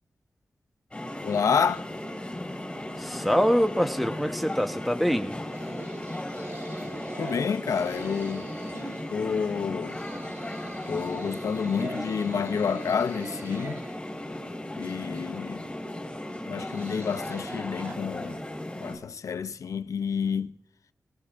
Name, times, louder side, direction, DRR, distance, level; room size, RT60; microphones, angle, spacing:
sound 1, 0.9-19.0, left 1 dB, 15° left, 4.3 m, -36 dB
voice 1, 1.2-1.9 7.2-8.5 9.1-10.0 10.9-13.8 14.8-15.6 16.5-18.4 18.8-20.5, left 6 dB, 75° left, 0.5 m, -29 dB
voice 2, 3.0-5.4, equal, ahead, 1.0 m, -25 dB
sound 2, 5.5-9.1 9.8-14.0 16.5-17.9, right 3 dB, 55° right, 1.4 m, -43 dB
21.0 x 15.0 x 2.5 m
wide cardioid pair, 145°, 6 cm